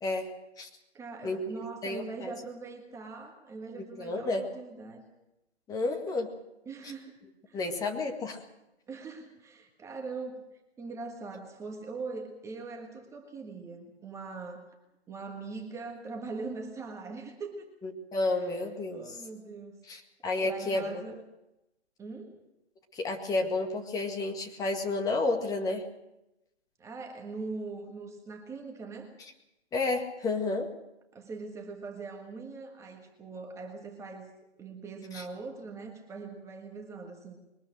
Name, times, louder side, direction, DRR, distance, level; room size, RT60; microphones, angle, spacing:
voice 1, 0.0-0.3 0.6-0.7 1.2-2.3 3.8-4.4 5.7-6.3 7.5-8.4 17.8-19.1 19.9-21.0 22.9-25.8 29.7-30.7 35.1-35.2, left 2 dB, 10° left, 3 dB, 1.9 m, -31 dB
voice 2, 0.9-5.0 6.6-7.2 7.5-7.8 8.9-10.5 10.8-14.7 15.1-17.6 18.3-18.6 18.9-20.1 20.4-21.2 22.0-22.4 26.8-29.1 31.1-34.3 34.6-37.4, right 4 dB, 10° right, 2 dB, 1.5 m, -41 dB
22.0 x 20.0 x 6.5 m, 0.91 s
figure-of-eight pair, 140°, 34 cm